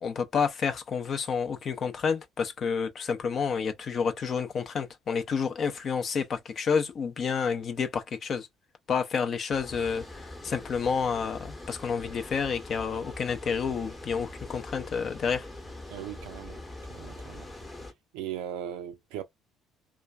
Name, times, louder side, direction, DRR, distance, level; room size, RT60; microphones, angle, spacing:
voice 1, 0.0-8.5 8.9-15.5, left 6 dB, 40° left, 0.6 m, -29 dB
Water, 9.5-17.9, left 1 dB, 20° left, 0.9 m, -43 dB
voice 2, 15.9-16.6 16.9-17.5 18.1-19.2, right 10 dB, 65° right, 0.4 m, -38 dB
2.4 x 2.3 x 2.3 m
figure-of-eight pair, 50°, 0 cm